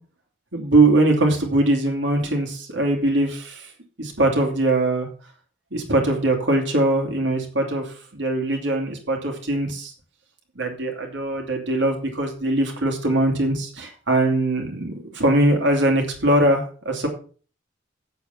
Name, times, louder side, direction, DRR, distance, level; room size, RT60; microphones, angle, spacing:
voice 1, 0.5-3.7 4.0-5.1 5.7-9.9 10.6-17.1, right 2 dB, 65° right, 1 dB, 2.9 m, -21 dB
8.0 x 8.0 x 7.1 m, 0.39 s
head